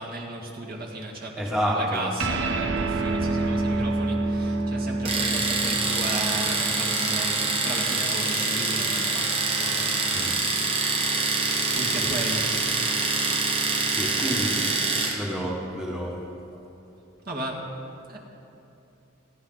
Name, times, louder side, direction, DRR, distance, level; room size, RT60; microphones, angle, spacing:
voice 1, 0.0-10.6 11.7-12.5 17.3-17.7 18.1-18.2, right 1 dB, 45° right, -2 dB, 2.1 m, -35 dB
voice 2, 1.4-2.1 10.1-10.4 12.0-12.2 13.9-14.8 15.1-16.3, equal, 5° right, -3 dB, 1.5 m, -29 dB
sound 1, 2.2-9.0, right 2 dB, 70° right, 1.0 m, -28 dB
Domestic sounds home sounds, 5.0-15.2, right 3 dB, 25° right, 1.5 m, -25 dB
28.0 x 11.5 x 4.0 m, 2.9 s
head